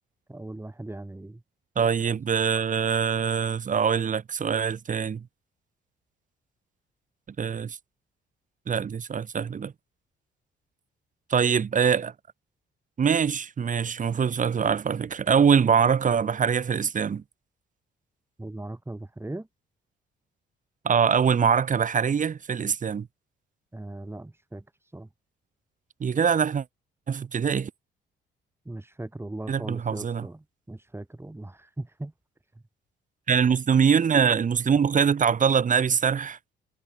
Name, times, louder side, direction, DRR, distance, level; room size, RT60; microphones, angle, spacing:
voice 1, 0.3-1.4 18.4-19.5 23.7-25.1 28.6-32.1, right 2 dB, 10° right, 7.8 m, -39 dB
voice 2, 1.8-5.3 7.4-7.8 8.7-9.7 11.3-12.1 13.0-17.2 20.8-23.1 26.0-26.6 27.1-27.7 29.5-30.3 33.3-36.4, right 7 dB, 40° right, 1.4 m, -23 dB
cardioid pair, 90°, 20 cm